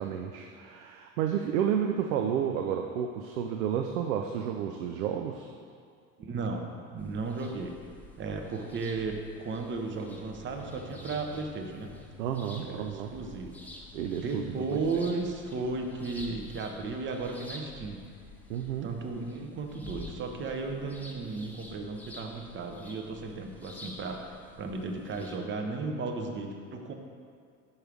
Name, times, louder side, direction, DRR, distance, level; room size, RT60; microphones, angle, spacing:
voice 1, 0.0-5.5 12.2-13.1 13.9-14.5 14.9-15.0 18.5-19.0, right 9 dB, 65° right, 4 dB, 0.5 m, -31 dB
voice 2, 6.2-7.8 8.2-11.9 12.6-13.6 14.1-18.0 18.8-26.9, right 3 dB, 25° right, 3 dB, 0.7 m, -35 dB
sound 1, 7.0-25.4, left 1 dB, 5° left, 0.3 m, -49 dB
sound 2, 10.4-21.4, left 4 dB, 85° left, 0.7 m, -56 dB
5.6 x 4.7 x 4.9 m, 2.3 s
figure-of-eight pair, 65°, 45 cm